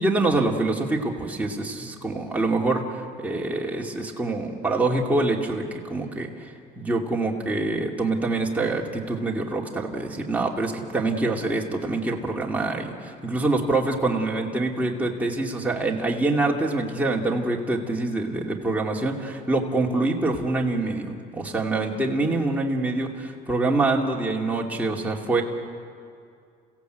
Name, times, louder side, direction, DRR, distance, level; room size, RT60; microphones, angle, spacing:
voice 1, 0.0-25.4, right 2 dB, 10° right, -2 dB, 2.6 m, -25 dB
29.5 x 16.5 x 8.1 m, 2.3 s
cardioid pair, 110°, 17 cm